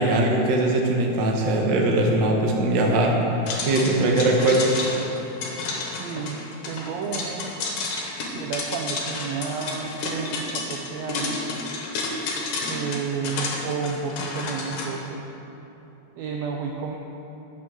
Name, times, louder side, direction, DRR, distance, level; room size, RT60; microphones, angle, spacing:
voice 1, 0.0-3.1 3.6-4.8, right 2 dB, 60° right, 0 dB, 1.2 m, -21 dB
sound 1, 3.5-14.9, left 3 dB, 75° left, 2.7 m, -31 dB
voice 2, 5.9-7.5 8.3-11.5 12.6-15.2 16.2-17.0, right 5 dB, 80° right, 1 dB, 1.5 m, -31 dB
9.5 x 7.4 x 6.2 m, 3.0 s
omnidirectional pair, 3.7 m